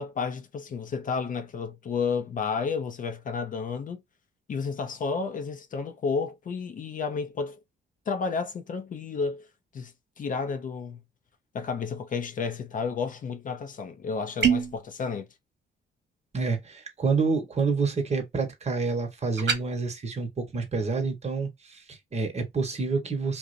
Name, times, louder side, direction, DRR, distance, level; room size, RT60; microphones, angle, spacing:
voice 1, 0.0-4.0 4.5-7.6 8.1-9.5 9.7-11.0 11.5-15.3, left 5 dB, 45° left, 0.5 m, -31 dB
sound 1, 14.4-14.8 19.4-19.6, right 7 dB, 65° right, 0.9 m, -23 dB
voice 2, 16.3-23.4, right 4 dB, 35° right, 1.0 m, -28 dB
2.5 x 2.1 x 2.5 m
cardioid pair, 90°, 20 cm